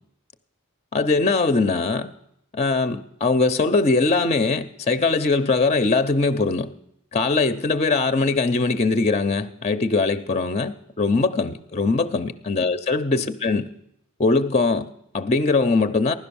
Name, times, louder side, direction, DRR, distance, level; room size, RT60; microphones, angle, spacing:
voice 1, 0.9-2.1 2.5-6.7 7.1-13.7 14.2-16.1, left 3 dB, 30° left, 12 dB, 0.6 m, -21 dB
15.5 x 12.0 x 7.0 m, 0.74 s
head